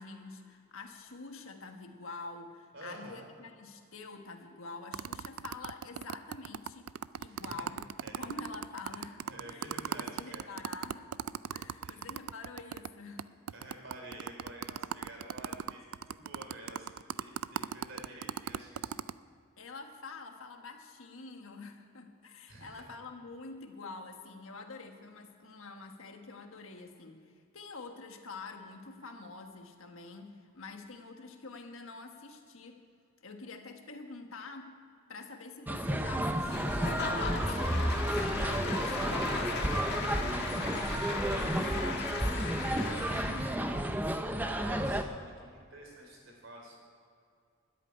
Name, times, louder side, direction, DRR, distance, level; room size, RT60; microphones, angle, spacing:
voice 1, 0.0-6.9 7.2-7.8 8.2-9.7 10.0-11.1 11.5-13.3 19.6-32.8 33.2-34.7 35.1-44.1, left 3 dB, 65° left, 4 dB, 1.4 m, -47 dB
voice 2, 2.7-3.3 7.2-7.7 8.0-8.2 8.9-10.5 11.8-12.1 13.5-16.9 17.2-18.9 22.5-22.8 44.4-46.8, right 1 dB, 60° right, 0 dB, 3.9 m, -49 dB
sound 1, 4.9-12.9 13.2-13.3 13.5-19.1, right 8 dB, 75° right, 0.4 m, -37 dB
sound 2, 35.7-45.0, right 1 dB, 10° right, 0.6 m, -32 dB
Applause / Crowd, 36.5-43.8, left 4 dB, 50° left, 1.5 m, -38 dB
13.5 x 8.6 x 9.9 m, 2.3 s
head